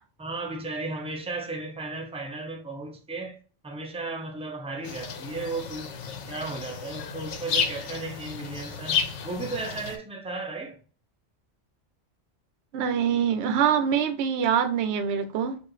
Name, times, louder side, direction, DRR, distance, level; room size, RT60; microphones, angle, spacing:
voice 1, 0.2-3.4 3.6-5.9 6.3-10.8, right 3 dB, 10° right, 0.4 m, -35 dB
sound 1, 4.8-10.0, left 7 dB, 80° left, 1.0 m, -32 dB
voice 2, 12.7-15.6, right 8 dB, 70° right, 0.9 m, -24 dB
4.6 x 2.5 x 3.0 m
omnidirectional pair, 1.2 m